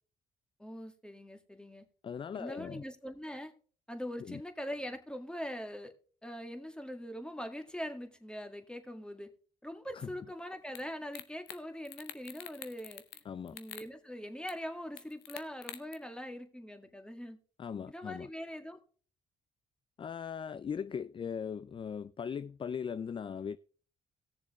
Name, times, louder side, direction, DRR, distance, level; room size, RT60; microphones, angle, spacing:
voice 1, 0.6-1.8 2.3-3.5 3.9-5.9 6.2-9.3 9.6-13.0 13.5-17.4 17.9-18.8, equal, 5° left, 1.8 m, -42 dB
voice 2, 2.0-2.8 4.2-4.4 9.9-10.1 13.3-13.6 17.6-18.3 20.0-23.6, left 7 dB, 30° left, 0.4 m, -39 dB
sound 1, 10.7-10.8 11.1-11.6 11.8-13.2 13.5-13.9 14.5-14.6 15.0-15.9, left 13 dB, 85° left, 0.8 m, -46 dB
17.5 x 6.9 x 3.1 m
supercardioid pair, 55°, 16 cm